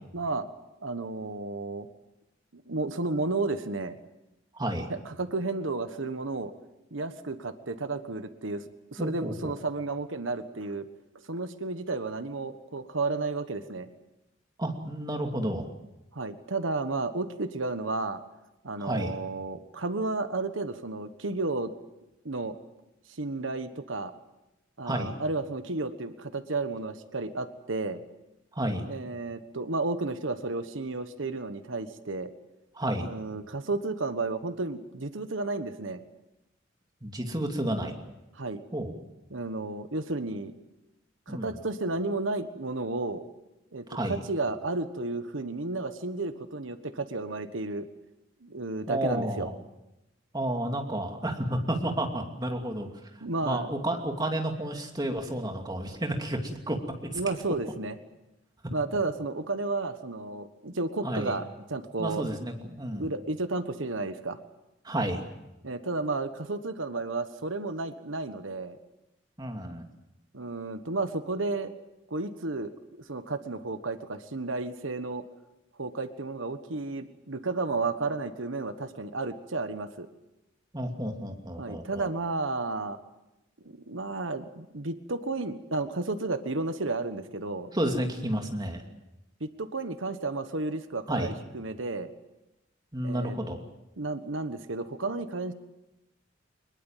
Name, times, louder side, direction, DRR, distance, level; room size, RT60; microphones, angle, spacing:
voice 1, 0.1-0.5 0.8-1.9 2.5-4.0 4.9-6.5 6.9-8.6 8.9-10.9 11.3-13.9 16.1-18.2 18.6-21.7 22.2-22.6 23.2-24.1 24.8-28.0 28.9-32.3 33.0-36.0 38.4-38.6 39.3-40.5 41.3-43.2 43.7-47.9 48.4-49.5 53.2-53.7 57.1-58.0 58.7-62.2 62.9-64.4 65.6-68.8 70.3-71.7 72.1-75.2 75.8-80.1 81.6-83.0 83.6-87.7 89.4-92.1 93.0-93.4 94.0-95.5, right 3 dB, 80° right, 10 dB, 1.4 m, -32 dB
voice 2, 4.5-4.9 9.0-9.5 14.6-15.7 18.8-19.2 24.8-25.1 28.5-28.8 32.7-33.1 37.0-37.9 38.7-38.9 41.3-41.5 43.9-44.2 48.9-49.5 50.3-52.9 53.4-56.8 57.1-57.2 61.0-61.3 62.0-63.1 64.8-65.2 69.4-69.8 80.7-82.1 87.7-88.8 91.1-91.3 92.9-93.6, right 1 dB, 20° right, 3 dB, 2.7 m, -31 dB
23.5 x 21.5 x 7.4 m, 0.95 s
head